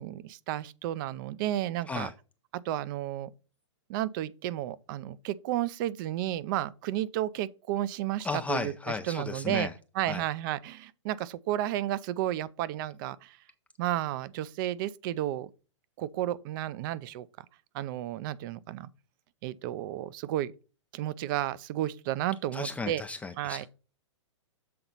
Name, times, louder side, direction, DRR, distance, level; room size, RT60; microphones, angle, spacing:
voice 1, 0.0-2.1 2.5-3.3 3.9-8.7 9.1-9.7 10.0-13.4 13.8-15.5 16.0-17.3 17.7-18.9 19.4-20.5 20.9-23.0 23.4-23.7, right 13 dB, 40° right, 0.5 m, -32 dB
voice 2, 8.2-9.7 10.1-10.2 22.5-23.7, left 4 dB, 10° left, 0.4 m, -34 dB
7.7 x 3.9 x 5.5 m
hypercardioid pair, 125°, 16 cm